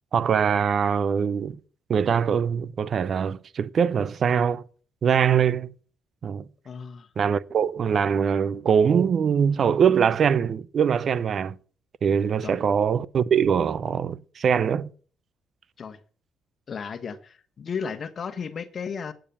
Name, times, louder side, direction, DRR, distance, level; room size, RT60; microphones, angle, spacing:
voice 1, 0.1-1.6 1.9-4.6 5.0-5.7 6.2-6.5 7.2-11.6 12.0-14.9, right 7 dB, 55° right, 0.6 m, -22 dB
voice 2, 6.6-7.1 12.4-12.6 15.8-16.0 16.7-19.1, left 6 dB, 50° left, 1.2 m, -34 dB
9.1 x 8.5 x 7.0 m
cardioid pair, 90°, 0 cm